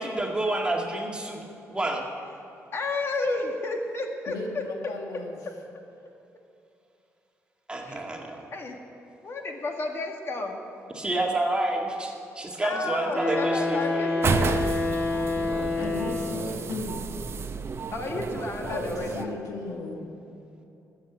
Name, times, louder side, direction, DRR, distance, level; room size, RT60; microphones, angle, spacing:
voice 1, 0.0-2.1 7.7-8.4 11.0-14.0, right 2 dB, 15° right, 0 dB, 2.0 m, -29 dB
voice 2, 2.7-4.6 7.8-8.0 8.5-8.8 9.2-10.6 12.6-14.6 17.9-19.3, left 2 dB, 45° left, 3 dB, 1.8 m, -31 dB
voice 3, 4.3-5.4 15.7-17.0 18.6-20.2, left 3 dB, 80° left, 2 dB, 1.8 m, -36 dB
Wind instrument woodwind instrument, 13.1-16.6, left 3 dB, 25° left, 3.1 m, -27 dB
sound 1, 14.2-19.3, right 5 dB, 45° right, 0.8 m, -31 dB
13.0 x 7.6 x 8.5 m, 2.8 s
cardioid pair, 90°, 6 cm